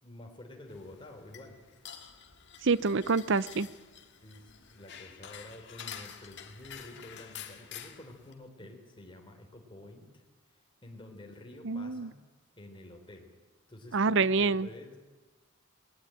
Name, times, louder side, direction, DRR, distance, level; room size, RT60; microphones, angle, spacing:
voice 1, 0.0-1.5 4.2-10.2 10.8-12.2 12.6-13.3 13.7-15.0, left 1 dB, 25° left, 2 dB, 3.6 m, -49 dB
sound 1, 0.7-8.3, left 8 dB, 55° left, 2.0 m, -48 dB
voice 2, 2.6-3.7 11.6-12.1 13.9-14.7, right 4 dB, 55° right, 18 dB, 0.7 m, -27 dB
20.0 x 18.0 x 9.1 m, 1.2 s
head